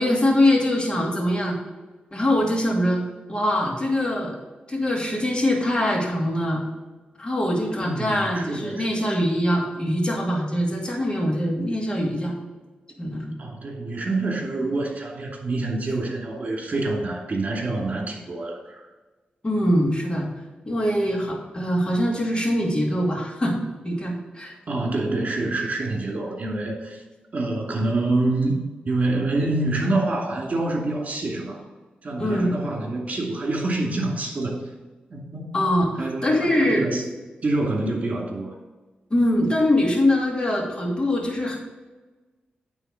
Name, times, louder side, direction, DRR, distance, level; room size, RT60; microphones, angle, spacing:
voice 1, 0.0-1.6 2.1-3.0 3.3-4.4 4.7-6.6 7.2-12.3 13.0-13.3 19.4-20.3 20.7-23.6 23.8-24.5 32.2-32.5 35.5-36.9 39.1-41.6, left 1 dB, 30° left, -1 dB, 2.6 m, -23 dB
voice 2, 7.8-9.1 13.4-18.9 24.7-27.0 27.3-28.6 28.9-31.6 32.0-34.6 35.1-35.5 36.0-37.0 37.4-38.6, right 2 dB, 45° right, -2 dB, 2.6 m, -26 dB
9.1 x 4.0 x 6.4 m, 1.2 s
cardioid pair, 70°, 3 cm